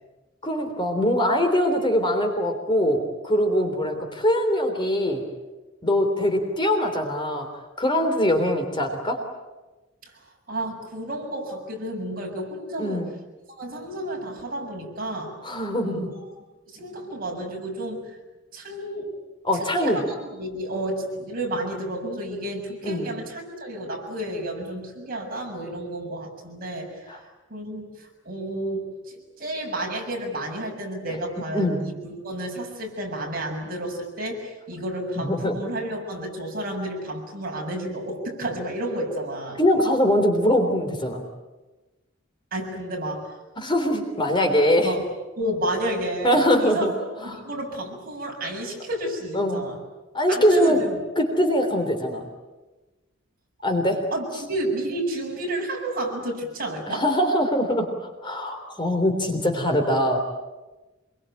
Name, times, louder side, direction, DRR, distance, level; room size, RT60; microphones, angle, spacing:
voice 1, 0.4-5.2 5.8-7.5 7.8-9.2 12.8-13.1 15.4-16.1 19.4-20.0 22.8-23.1 27.1-27.2 31.5-31.8 35.2-35.6 39.6-41.2 43.6-44.9 46.2-46.9 47.3-47.4 49.3-49.6 50.1-50.8 51.2-52.3 53.6-54.0 56.9-57.9 58.2-60.2, equal, 25° left, 4 dB, 3.5 m, -22 dB
voice 2, 10.5-13.1 13.5-15.4 15.8-16.3 16.6-18.2 18.5-19.1 19.5-27.1 27.5-39.6 42.5-43.4 44.8-45.1 45.3-46.9 47.2-49.8 50.3-51.0 54.1-57.1, right 1 dB, 50° right, 0 dB, 7.1 m, -31 dB
26.0 x 23.5 x 9.1 m, 1.1 s
head